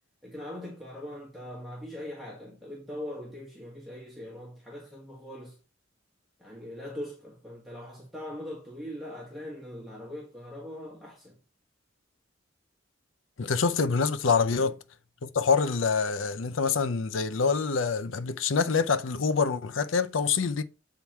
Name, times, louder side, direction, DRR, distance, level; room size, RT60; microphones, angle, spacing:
voice 1, 0.2-5.6 6.4-11.4 14.5-14.7, left 1 dB, ahead, 1.6 m, -41 dB
voice 2, 13.4-14.8 15.2-20.6, left 5 dB, 85° left, 0.6 m, -26 dB
8.4 x 3.8 x 4.5 m
head